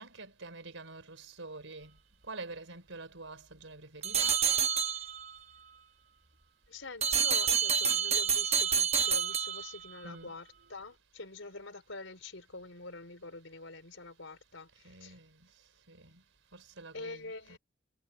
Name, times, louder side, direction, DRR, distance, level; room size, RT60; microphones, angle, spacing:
voice 1, 0.0-1.9 2.3-4.4 10.0-10.3 14.8-15.3 15.9-16.2 16.5-17.6, right 3 dB, 90° right, 4.9 m, -47 dB
sound 1, 4.0-5.4 7.0-10.0, right 7 dB, 30° right, 1.3 m, -28 dB
voice 2, 6.7-15.2 16.9-17.6, left 3 dB, 85° left, 4.4 m, -46 dB
head